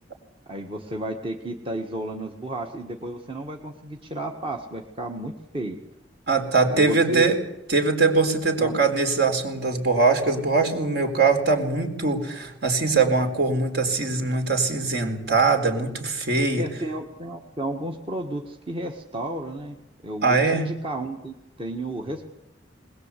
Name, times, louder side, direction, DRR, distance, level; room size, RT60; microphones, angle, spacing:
voice 1, 0.5-5.8 6.7-7.3 8.6-8.8 16.5-19.8 20.0-22.2, right 1 dB, 30° right, 2 dB, 1.6 m, -32 dB
voice 2, 6.3-7.4 7.7-16.6 20.2-20.7, right 3 dB, 60° right, 4 dB, 4.0 m, -22 dB
21.0 x 21.0 x 8.3 m, 0.90 s
head